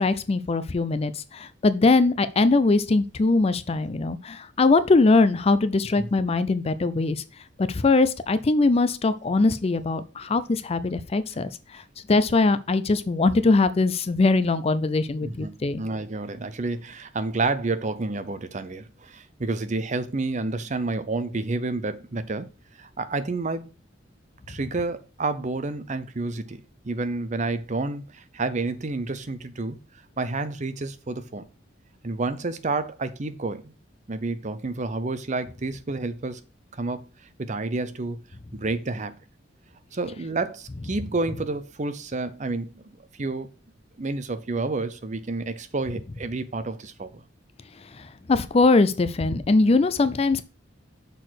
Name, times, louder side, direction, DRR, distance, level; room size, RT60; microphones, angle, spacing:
voice 1, 0.0-7.2 7.6-11.8 12.1-15.8 48.0-50.4, left 3 dB, 30° left, 0.4 m, -21 dB
voice 2, 15.8-22.5 22.8-23.7 24.5-29.8 30.2-31.4 32.0-33.7 34.1-36.4 36.7-37.0 37.4-38.2 38.5-39.1 39.9-42.8 43.2-43.5 44.0-47.2, right 3 dB, 40° right, 0.7 m, -29 dB
6.5 x 4.1 x 6.3 m
head